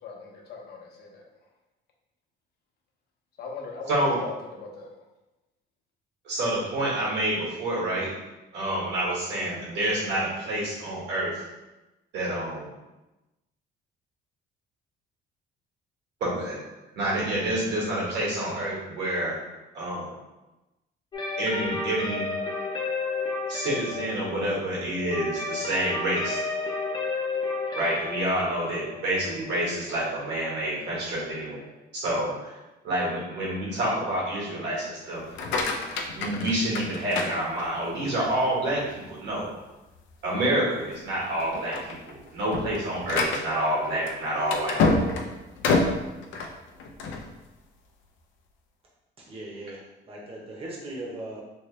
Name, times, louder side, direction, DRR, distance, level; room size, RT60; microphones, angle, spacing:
voice 1, 0.0-1.2 3.4-5.0, left 4 dB, 60° left, -1 dB, 0.8 m, -39 dB
voice 2, 6.2-8.1 8.5-11.4 12.1-12.7 16.2-16.6 16.9-19.4 19.7-20.2 21.4-22.3 23.5-26.4 27.7-31.7 31.9-32.5 32.8-35.2 36.1-39.5 40.2-44.8, right 1 dB, 70° right, -5 dB, 1.5 m, -28 dB
sound 1, 21.1-30.8, left 3 dB, 25° left, 0.5 m, -32 dB
sound 2, 35.2-38.0 38.5-39.0 39.4-39.5 39.9-40.1 40.8-41.1 41.4-47.3, left 3 dB, 90° left, 0.5 m, -28 dB
voice 3, 49.2-51.4, right 1 dB, 30° right, -3 dB, 0.9 m, -39 dB
3.1 x 2.9 x 3.1 m, 1.0 s
cardioid pair, 150°, 19 cm